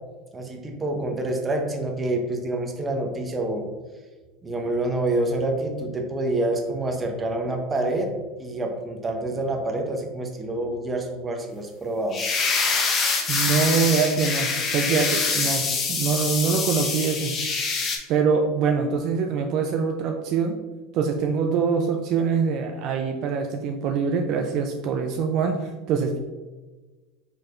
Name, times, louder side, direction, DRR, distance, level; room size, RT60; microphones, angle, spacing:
voice 1, 0.3-3.7 4.4-8.1 8.4-12.2, right 2 dB, 20° right, 3 dB, 0.7 m, -27 dB
sound 1, 12.1-18.0, left 4 dB, 35° left, 0.7 m, -25 dB
voice 2, 13.3-17.3 18.1-20.6 20.9-26.2, right 5 dB, 55° right, 4 dB, 0.4 m, -24 dB
4.6 x 3.1 x 2.5 m, 1.3 s
supercardioid pair, 115°, 0 cm